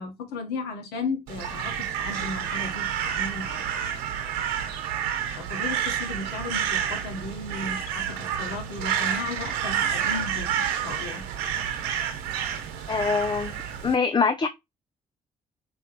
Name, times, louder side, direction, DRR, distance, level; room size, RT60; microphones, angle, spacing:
voice 1, 0.0-2.9 3.2-3.7 5.4-10.5 10.8-11.2, left 3 dB, 75° left, 1.4 m, -35 dB
Crow, 1.3-13.9, right 9 dB, 80° right, 1.2 m, -29 dB
voice 2, 12.9-13.6 13.8-14.5, left 5 dB, 25° left, 0.6 m, -23 dB
5.4 x 3.1 x 3.1 m
hypercardioid pair, 45°, 17 cm